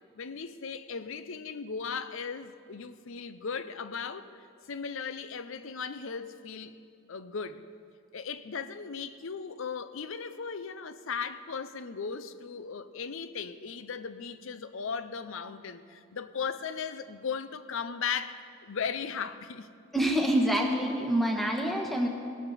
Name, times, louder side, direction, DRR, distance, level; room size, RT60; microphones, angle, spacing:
voice 1, 0.2-6.8 7.1-7.6 8.1-19.7, left 6 dB, 60° left, 12 dB, 0.6 m, -37 dB
voice 2, 19.9-22.1, right 1 dB, ahead, 0 dB, 1.2 m, -26 dB
19.5 x 9.2 x 4.2 m, 2.3 s
head